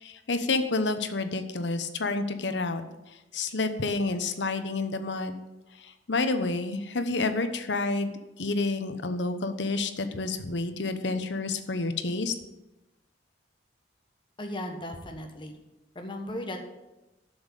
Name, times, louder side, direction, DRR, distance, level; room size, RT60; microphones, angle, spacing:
voice 1, 0.0-2.8 3.3-5.3 5.8-8.1 8.4-12.3, left 3 dB, 70° left, 9 dB, 1.0 m, -29 dB
voice 2, 14.4-15.6 15.9-16.6, left 1 dB, 25° left, 4 dB, 1.3 m, -36 dB
7.8 x 7.2 x 8.3 m, 1.0 s
head